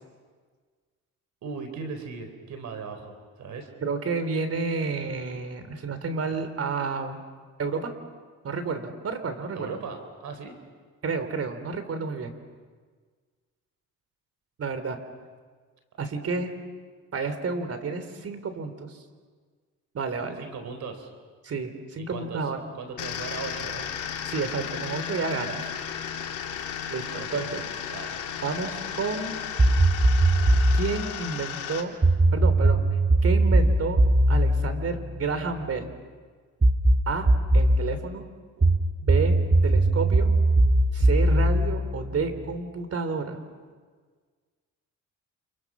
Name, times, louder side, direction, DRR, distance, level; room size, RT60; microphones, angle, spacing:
voice 1, 1.4-3.7 9.5-10.6 20.4-21.1 22.1-22.5 22.8-23.9 27.1-27.5 27.9-28.2 38.6-38.7, right 5 dB, 70° right, 7 dB, 4.3 m, -38 dB
voice 2, 3.8-7.2 7.6-7.9 8.4-9.7 11.0-12.3 14.6-15.0 16.0-16.6 17.1-19.0 19.9-20.5 21.4-22.6 24.3-25.7 26.9-27.6 28.4-29.3 30.7-31.9 32.3-32.8 33.2-34.0 34.3-35.9 37.1-37.3 37.5-38.3 39.0-39.4 39.6-40.3 40.9-43.4, right 4 dB, 50° right, 9 dB, 3.6 m, -30 dB
sound 1, 23.0-31.8, left 8 dB, 80° left, 3.2 m, -34 dB
sound 2, 29.6-30.9 32.0-35.7 36.6-37.9 38.6-42.5, right 1 dB, 25° right, 1.8 m, -20 dB
29.5 x 29.0 x 6.3 m, 1.5 s
cardioid pair, 90°, 30 cm